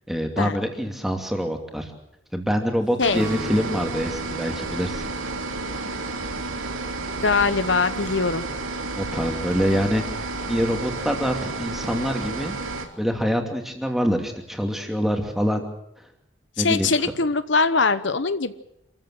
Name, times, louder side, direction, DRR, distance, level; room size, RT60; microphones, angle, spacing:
voice 1, 0.1-1.9 2.3-5.1 8.9-10.0 10.5-12.6 13.0-15.6 16.6-16.9, equal, ahead, 3 dB, 2.7 m, -25 dB
sound 1, 3.0-12.9, right 3 dB, 85° right, 3.2 m, -31 dB
Acoustic guitar / Strum, 3.1-6.5, right 1 dB, 20° right, 3.5 m, -41 dB
voice 2, 7.2-8.4 16.6-18.5, left 4 dB, 65° left, 12 dB, 0.9 m, -22 dB
27.5 x 15.0 x 7.7 m, 0.83 s
head